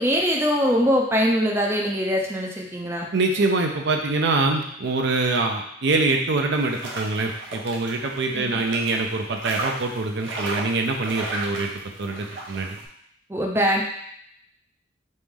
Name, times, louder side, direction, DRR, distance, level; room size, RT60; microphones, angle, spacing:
voice 1, 0.0-3.1 8.3-8.6 13.3-13.8, equal, 15° right, 0 dB, 0.5 m, -22 dB
voice 2, 3.1-11.7 12.0-12.8, right 3 dB, 65° right, 3 dB, 0.5 m, -24 dB
sound 1, 6.5-12.9, right 2 dB, 80° right, 0.9 m, -35 dB
3.9 x 3.2 x 3.6 m, 0.71 s
head